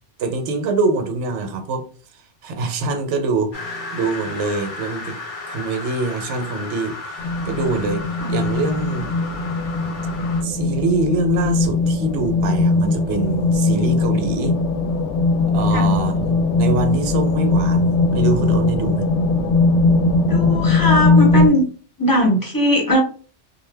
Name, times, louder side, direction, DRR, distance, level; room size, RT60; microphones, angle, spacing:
voice 1, 0.2-1.8 2.4-3.5 3.9-5.2 5.5-8.0 8.3-9.1 10.4-14.6 15.5-19.1, right 3 dB, 80° right, 6 dB, 0.9 m, -24 dB
sound 1, 3.5-10.4, left 3 dB, 50° left, 0.8 m, -34 dB
sound 2, 7.2-21.5, left 3 dB, 85° left, 0.9 m, -19 dB
voice 2, 20.3-21.7 22.0-23.0, left 1 dB, 20° left, -1 dB, 0.8 m, -19 dB
2.6 x 2.1 x 3.2 m, 0.40 s
omnidirectional pair, 1.2 m